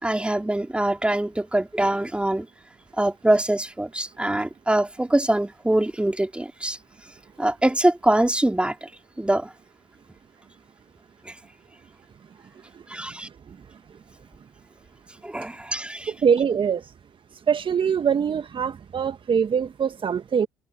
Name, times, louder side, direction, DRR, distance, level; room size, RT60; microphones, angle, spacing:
voice 1, 0.0-2.4 3.0-6.8 7.4-8.7 9.2-9.5 12.9-13.3 15.2-16.1, right 1 dB, 10° right, 3.4 m, -23 dB
voice 2, 16.1-16.8 17.5-20.5, right 7 dB, 40° right, 1.7 m, -23 dB
hypercardioid pair, 55°, 13 cm